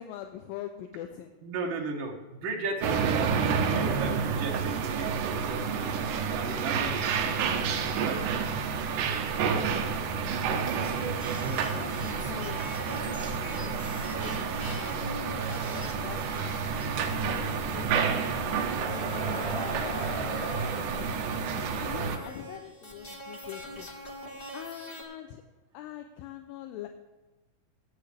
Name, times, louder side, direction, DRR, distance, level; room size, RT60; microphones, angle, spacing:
voice 1, 0.0-1.3 10.2-10.7 11.4-14.1 14.6-18.7 19.3-20.8 21.7-24.0 24.5-25.4 25.7-26.9, left 11 dB, 80° left, 6 dB, 2.4 m, -44 dB
voice 2, 1.4-5.9 6.3-7.5 7.8-8.3 11.4-12.0 14.1-14.4 14.8-15.5 21.8-22.4, right 3 dB, 50° right, 0 dB, 1.5 m, -37 dB
sound 1, 2.8-22.2, right 6 dB, 75° right, 2.2 m, -30 dB
sound 2, 10.5-25.0, left 1 dB, 30° left, 0.9 m, -43 dB
sound 3, 17.8-22.3, equal, ahead, 4.3 m, -39 dB
23.5 x 8.5 x 3.4 m, 1.1 s
omnidirectional pair, 4.3 m